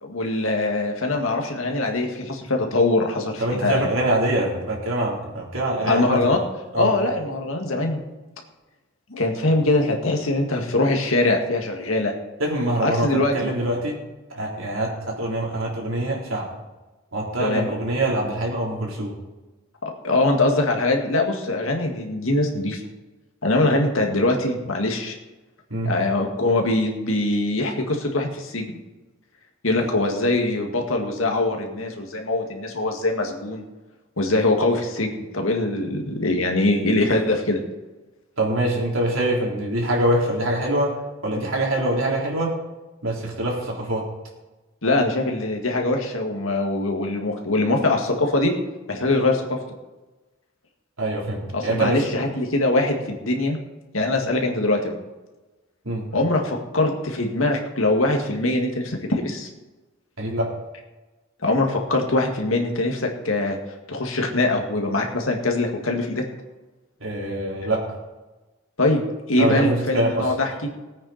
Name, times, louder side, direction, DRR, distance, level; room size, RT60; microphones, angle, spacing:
voice 1, 0.0-3.8 5.8-6.4 6.7-8.0 9.1-12.1 12.8-13.5 17.4-17.6 19.8-22.8 23.4-25.1 25.9-28.7 29.6-33.6 34.2-37.6 44.8-48.5 48.9-49.6 51.5-53.6 53.9-54.9 56.1-59.5 61.4-63.6 63.9-66.2 68.8-69.0 69.3-70.5, left 2 dB, 75° left, 2 dB, 2.1 m, -22 dB
voice 2, 3.4-6.2 6.7-7.0 12.4-14.0 14.3-16.5 17.1-19.1 25.7-25.9 38.4-42.5 43.0-44.1 51.0-52.0 55.8-56.1 60.2-60.5 67.0-67.9 69.4-70.3, right 1 dB, 75° right, -2 dB, 3.8 m, -24 dB
20.0 x 8.8 x 4.3 m, 1.1 s
head